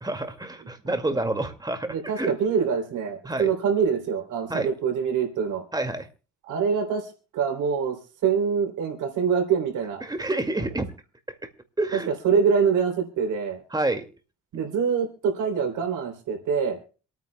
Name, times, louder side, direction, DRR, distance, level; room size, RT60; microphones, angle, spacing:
voice 1, 0.0-2.3 3.2-3.5 4.5-4.7 5.7-6.1 10.0-10.9 11.3-11.4 11.8-12.1 13.7-14.1, right 2 dB, 15° right, 7 dB, 2.2 m, -28 dB
voice 2, 1.9-5.6 6.4-8.0 8.2-10.0 11.9-13.6 14.5-16.8, right 6 dB, 80° right, 4 dB, 3.4 m, -25 dB
27.0 x 9.3 x 2.3 m, 0.36 s
cardioid pair, 90°, 30 cm